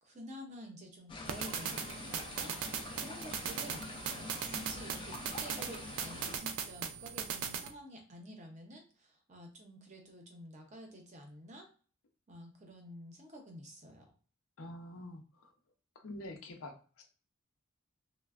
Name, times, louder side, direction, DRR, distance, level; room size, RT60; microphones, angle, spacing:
voice 1, 0.0-11.7 12.3-14.1, equal, 35° right, 2 dB, 0.6 m, -50 dB
sound 1, 1.1-6.4, left 3 dB, 25° left, 0.3 m, -45 dB
sound 2, 1.2-7.7, right 7 dB, 75° right, 0.4 m, -39 dB
voice 2, 14.6-15.5 15.9-17.1, left 1 dB, 80° left, 4 dB, 0.6 m, -47 dB
3.1 x 2.1 x 2.4 m, 0.40 s
head